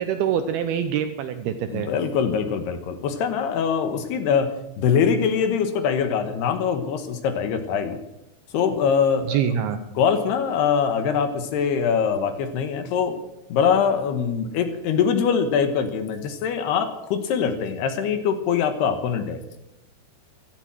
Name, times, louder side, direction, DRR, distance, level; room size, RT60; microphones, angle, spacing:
voice 1, 0.0-1.9 9.3-9.8, right 9 dB, 80° right, 9 dB, 2.3 m, -25 dB
voice 2, 1.7-8.0 8.5-9.6 10.0-13.2 13.5-19.4, left 7 dB, 70° left, 9 dB, 3.0 m, -23 dB
16.0 x 13.0 x 6.2 m, 0.89 s
omnidirectional pair, 5.2 m